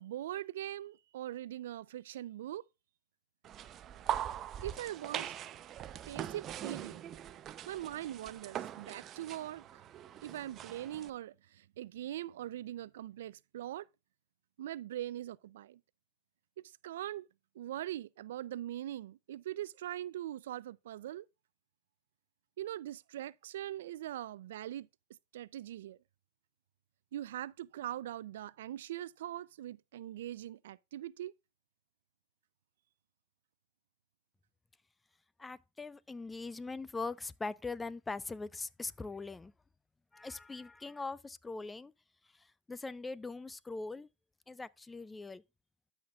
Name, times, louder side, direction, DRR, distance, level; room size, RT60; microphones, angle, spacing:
voice 1, 0.0-2.6 4.6-5.3 6.1-7.1 7.7-9.6 10.2-13.9 14.6-15.8 16.8-17.3 17.6-21.3 22.6-24.9 25.3-26.0 27.1-31.3, right 12 dB, 75° right, 0.4 m, -41 dB
sound 1, 3.4-11.1, right 11 dB, 35° right, 0.6 m, -42 dB
voice 2, 35.4-39.5 40.1-41.9 42.4-44.1 44.5-45.4, left 3 dB, 10° left, 0.4 m, -41 dB
12.5 x 5.8 x 2.4 m
hypercardioid pair, 125°, 0 cm